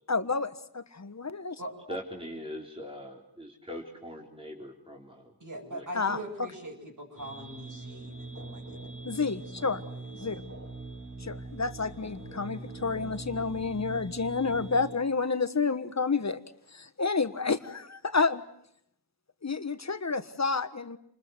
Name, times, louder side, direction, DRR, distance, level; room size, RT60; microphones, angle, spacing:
voice 1, 0.1-1.5 5.9-6.2 9.0-9.8 10.2-10.4 11.2-16.4 16.7-18.4 19.4-21.0, left 4 dB, 45° left, 11 dB, 1.5 m, -30 dB
voice 2, 1.9-5.4 5.7-5.9 6.1-6.2, equal, 15° right, 0 dB, 3.9 m, -42 dB
voice 3, 5.4-10.3, right 1 dB, 55° right, -3 dB, 7.5 m, -43 dB
sound 1, 7.2-15.0, right 2 dB, 40° right, 6.4 m, -42 dB
28.5 x 21.0 x 7.9 m, 0.70 s
wide cardioid pair, 55°, 39 cm